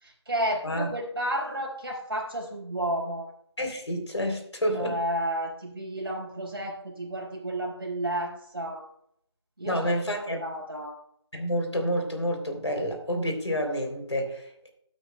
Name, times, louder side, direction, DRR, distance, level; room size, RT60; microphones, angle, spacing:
voice 1, 0.0-3.3 4.7-8.9 9.6-10.0 10.4-11.0, right 1 dB, 55° right, -1 dB, 4.3 m, -31 dB
voice 2, 3.6-5.0 9.6-10.4 11.3-14.7, equal, 75° left, 3 dB, 3.3 m, -29 dB
15.5 x 8.9 x 2.2 m, 0.70 s
figure-of-eight pair, 165°, 15 cm